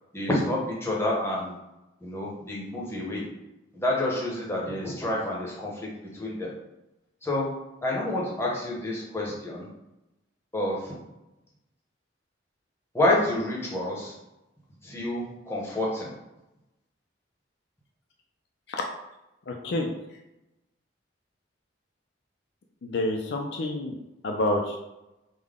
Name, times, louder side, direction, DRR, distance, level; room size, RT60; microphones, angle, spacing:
voice 1, 0.1-1.6 2.0-3.3 3.7-6.5 7.2-7.5 7.8-9.7 10.5-11.0 12.9-14.1 14.8-16.1, left 1 dB, 15° left, -4 dB, 0.7 m, -28 dB
voice 2, 19.5-19.9 22.8-24.0 24.2-24.8, left 1 dB, 55° left, 1 dB, 0.4 m, -28 dB
3.6 x 2.1 x 3.5 m, 0.94 s
head